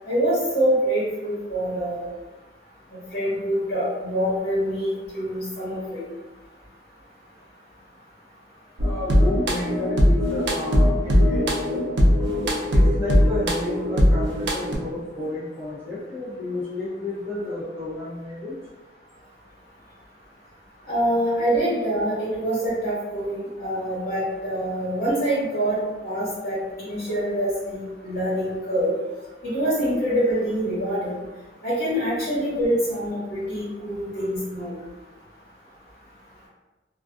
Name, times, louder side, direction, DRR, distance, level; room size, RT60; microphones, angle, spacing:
voice 1, 0.1-2.1 2.9-6.0 20.9-25.8 26.0-28.9 29.4-31.2 31.6-34.7, right 1 dB, 55° left, -10 dB, 1.1 m, -25 dB
voice 2, 8.8-11.9 12.7-18.5, left 2 dB, 5° right, -14 dB, 0.8 m, -31 dB
sound 1, 8.8-14.7, equal, 85° right, 0.5 m, -20 dB
2.4 x 2.3 x 2.4 m, 1.2 s
head